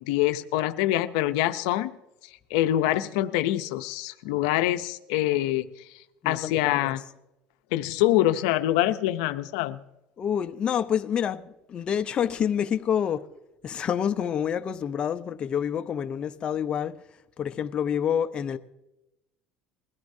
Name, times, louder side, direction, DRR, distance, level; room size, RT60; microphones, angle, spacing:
voice 1, 0.1-1.9 2.5-5.7 6.2-7.0 7.7-9.8, left 14 dB, 85° left, 0.6 m, -25 dB
voice 2, 6.2-6.9 10.2-13.2 13.6-17.0 17.4-18.6, left 8 dB, 35° left, 0.7 m, -28 dB
21.0 x 14.0 x 2.7 m
cardioid pair, 120°, 3 cm